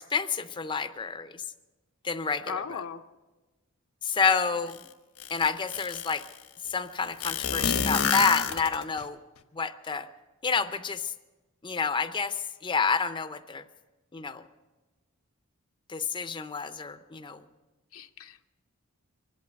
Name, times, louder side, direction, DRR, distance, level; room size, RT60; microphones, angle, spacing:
voice 1, 0.0-1.3 2.0-2.8 4.0-4.8 5.3-6.2 6.7-9.2 9.5-10.1 10.4-11.1 11.6-13.6 14.1-14.4 15.9-17.4, left 5 dB, 20° left, 9 dB, 0.5 m, -29 dB
voice 2, 2.5-3.0 4.5-4.6 17.9-18.5, left 6 dB, 75° left, 6 dB, 0.6 m, -37 dB
sound 1, 4.7-4.8 5.2-6.3 7.2-9.0, left 6 dB, 90° left, 1.1 m, -28 dB
24.5 x 8.4 x 6.9 m, 1.2 s
head